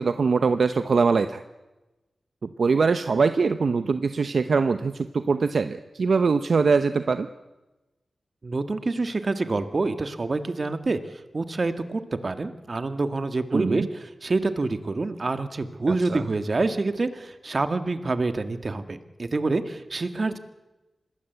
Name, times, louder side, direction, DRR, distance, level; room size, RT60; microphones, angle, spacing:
voice 1, 0.0-1.4 2.4-7.3 13.5-13.9 15.9-16.2, right 4 dB, 70° right, 10 dB, 0.9 m, -22 dB
voice 2, 8.4-20.4, right 3 dB, 50° right, 9 dB, 1.9 m, -27 dB
26.0 x 20.5 x 8.2 m, 1.1 s
wide cardioid pair, 70°, 0 cm